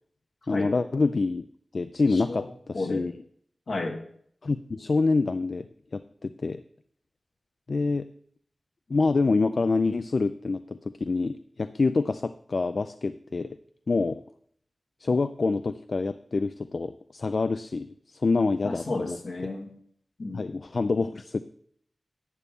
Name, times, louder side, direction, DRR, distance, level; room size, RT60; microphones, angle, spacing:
voice 1, 0.5-1.5 1.7-3.1 4.4-6.6 7.7-8.1 8.9-13.6 13.9-14.2 15.0-19.2 20.3-21.4, left 3 dB, 60° left, 11 dB, 0.3 m, -26 dB
voice 2, 2.1-2.5 2.7-3.0 3.7-4.0 18.6-19.7 20.2-20.5, left 2 dB, 80° left, 2 dB, 1.6 m, -32 dB
11.0 x 8.4 x 3.6 m, 0.63 s
wide cardioid pair, 65°, 0 cm